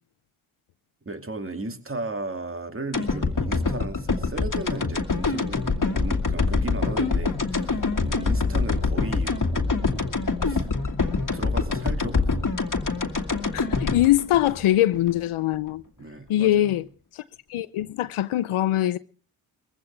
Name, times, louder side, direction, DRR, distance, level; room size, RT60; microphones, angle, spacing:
voice 1, 1.1-9.9 10.4-10.7 11.3-12.4 16.0-16.8, right 2 dB, 25° right, 2.3 m, -35 dB
sound 1, 2.9-15.2 15.5-15.6, left 4 dB, 40° left, 2.0 m, -25 dB
voice 2, 13.5-15.8 16.3-16.9 17.1-17.2 17.5-19.0, left 13 dB, 80° left, 0.7 m, -22 dB
21.0 x 15.5 x 3.3 m
supercardioid pair, 40°, 49 cm